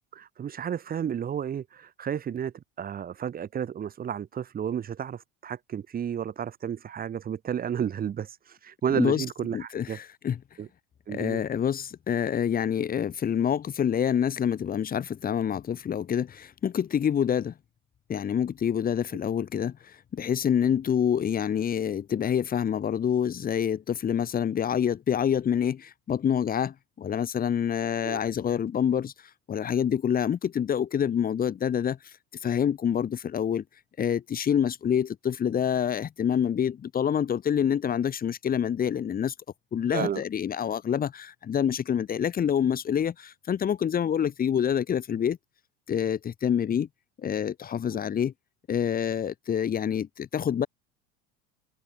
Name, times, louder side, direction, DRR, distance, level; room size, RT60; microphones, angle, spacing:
voice 1, 0.1-10.0 10.6-10.7 11.1-11.4 28.0-28.2 39.9-40.2, right 8 dB, 30° right, 2.8 m, -32 dB
voice 2, 9.5-10.4 11.1-17.5 18.1-29.1 29.5-32.0 32.4-33.6 34.0-39.3 39.7-45.4 45.9-46.9 47.2-48.3 48.7-50.7, left 8 dB, 30° left, 3.7 m, -27 dB
cardioid pair, 140°, 30 cm